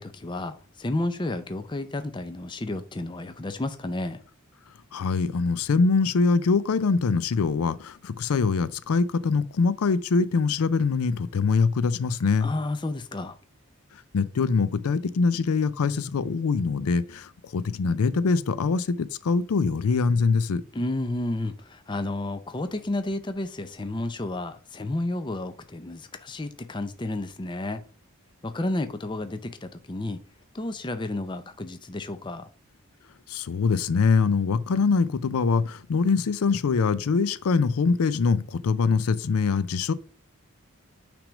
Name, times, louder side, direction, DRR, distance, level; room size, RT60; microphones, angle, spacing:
voice 1, 0.0-4.2 12.4-13.4 20.7-27.8 28.4-30.2 30.5-32.5, left 2 dB, 20° left, 0.5 m, -31 dB
voice 2, 4.9-12.5 13.9-20.6 33.3-39.9, left 4 dB, 85° left, 0.4 m, -23 dB
6.0 x 3.4 x 5.0 m
head